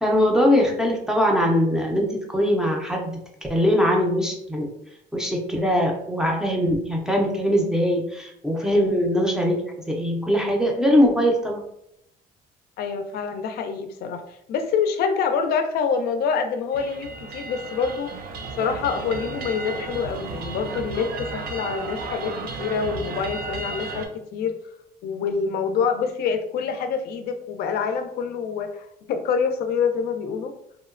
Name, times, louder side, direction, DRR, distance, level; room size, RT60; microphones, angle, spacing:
voice 1, 0.0-3.2 3.5-4.7 5.1-11.6, equal, 5° right, 0 dB, 0.5 m, -21 dB
voice 2, 12.8-18.1 18.6-24.6 25.0-30.5, left 6 dB, 70° left, 7 dB, 0.4 m, -26 dB
sound 1, 16.7-24.1, right 3 dB, 65° right, 0.4 m, -33 dB
2.8 x 2.0 x 2.4 m, 0.76 s
cardioid pair, 110°, 17 cm